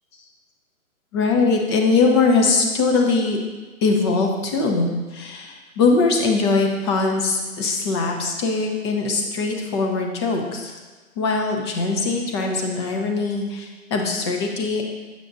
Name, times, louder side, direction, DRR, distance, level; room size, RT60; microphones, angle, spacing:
voice 1, 1.1-3.4 3.8-10.8 11.2-14.8, left 3 dB, 20° left, 2 dB, 0.5 m, -21 dB
6.7 x 6.7 x 2.5 m, 1.3 s
hypercardioid pair, 130°, 42 cm